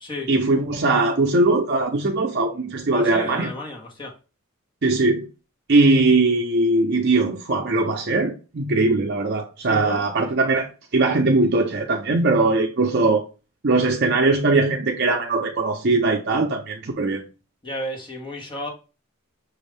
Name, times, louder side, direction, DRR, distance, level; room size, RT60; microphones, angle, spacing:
voice 1, 0.3-3.5 4.8-5.3 5.7-13.3 13.6-17.2, right 2 dB, 50° right, 0.6 m, -20 dB
voice 2, 2.9-4.1 9.6-10.0 17.6-18.7, left 1 dB, 20° left, 1.2 m, -33 dB
6.1 x 2.6 x 3.3 m
head